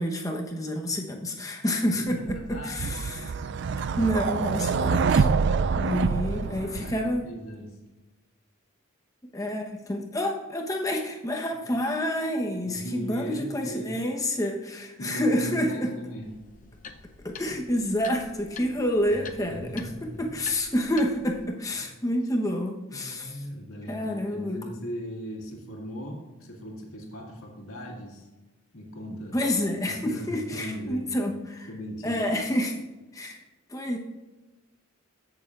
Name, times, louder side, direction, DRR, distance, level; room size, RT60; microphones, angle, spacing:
voice 1, 0.0-3.3 3.8-5.3 5.8-7.3 9.3-15.9 17.2-23.4 23.9-24.6 29.3-31.7 32.0-32.8 33.1-33.4 33.7-34.0, left 1 dB, 15° left, 1 dB, 0.9 m, -28 dB
voice 2, 1.9-2.9 5.5-7.8 12.6-14.0 15.0-16.4 19.1-20.4 21.7-21.9 22.9-28.3 28.7-29.4 29.9-31.2 31.7-32.2, equal, 80° left, -2 dB, 2.0 m, -39 dB
sound 1, 2.3-7.2, right 5 dB, 55° right, 0.3 m, -26 dB
sound 2, 16.2-21.5, left 5 dB, 35° left, 0.5 m, -46 dB
15.0 x 6.8 x 2.4 m, 1.2 s
head